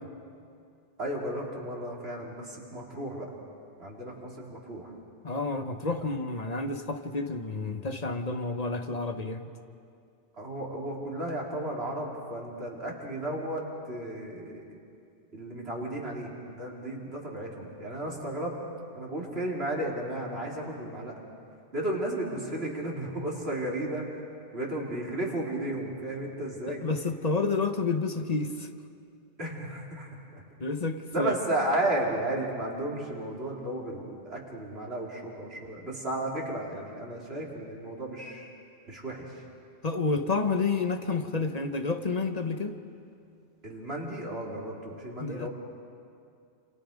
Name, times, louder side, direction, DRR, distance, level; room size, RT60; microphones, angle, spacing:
voice 1, 1.0-3.3 3.8-4.9 6.0-6.1 10.3-14.6 15.3-18.6 19.0-21.2 21.7-24.1 24.5-26.8 29.4-30.1 31.1-38.5 38.9-39.4 43.6-45.5, right 1 dB, 70° right, -3 dB, 3.7 m, -34 dB
voice 2, 5.2-9.5 26.7-28.7 30.6-31.3 39.8-42.8 45.2-45.5, left 3 dB, 40° left, 7 dB, 1.1 m, -30 dB
28.5 x 28.0 x 5.2 m, 2.4 s
omnidirectional pair, 1.1 m